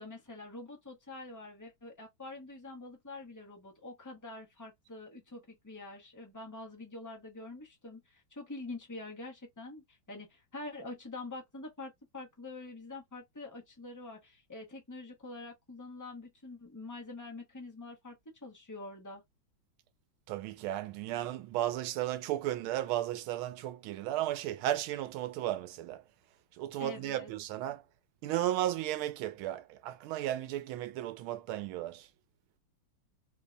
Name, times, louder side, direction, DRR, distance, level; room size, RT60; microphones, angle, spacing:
voice 1, 0.0-18.2 18.4-19.2 26.8-27.3, left 2 dB, 25° left, 0.4 m, -45 dB
voice 2, 20.3-26.0 26.6-27.8 28.2-32.1, right 13 dB, 90° right, 1.5 m, -34 dB
3.6 x 2.2 x 3.8 m
omnidirectional pair, 2.2 m